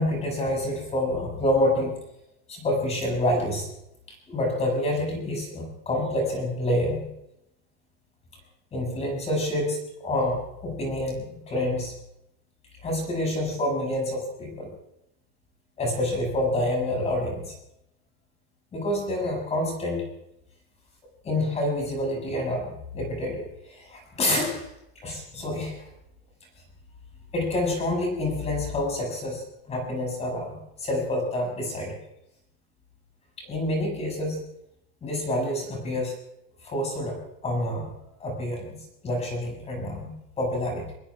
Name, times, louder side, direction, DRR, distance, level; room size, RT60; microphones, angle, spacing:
voice 1, 0.0-2.0 2.5-3.7 4.3-7.1 8.7-11.9 12.8-14.7 15.8-17.6 18.7-20.1 21.2-24.7 25.0-25.8 27.3-31.9 33.4-34.4 35.0-36.1 36.6-37.2 37.4-37.9 38.2-40.9, left 1 dB, 20° left, 0 dB, 6.9 m, -28 dB
24.0 x 22.5 x 2.4 m, 0.82 s
supercardioid pair, 160°, 30 cm